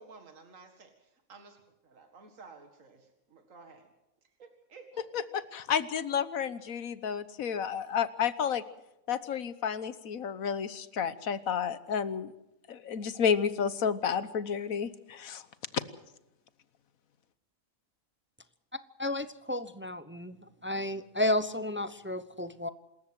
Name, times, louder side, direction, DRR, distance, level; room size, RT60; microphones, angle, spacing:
voice 1, 0.0-3.9 4.4-5.3, right 4 dB, 70° right, 5 dB, 2.3 m, -53 dB
voice 2, 5.5-8.6 9.1-12.3 12.7-15.4, left 7 dB, 90° left, 14 dB, 1.5 m, -31 dB
voice 3, 19.0-20.4 20.6-22.7, left 1 dB, 10° right, 12 dB, 0.6 m, -32 dB
27.0 x 14.0 x 7.8 m, 0.89 s
omnidirectional pair, 1.4 m